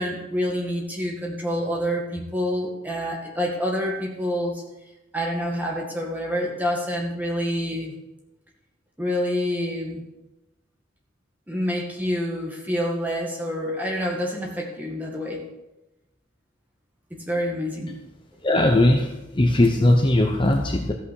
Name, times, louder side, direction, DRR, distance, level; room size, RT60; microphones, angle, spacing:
voice 1, 0.0-4.6 5.1-8.0 9.0-10.0 11.5-15.4 17.1-17.9, equal, 10° right, -1 dB, 2.0 m, -27 dB
voice 2, 18.4-20.9, left 1 dB, 25° left, 3 dB, 0.7 m, -19 dB
14.0 x 5.7 x 6.4 m, 0.98 s
head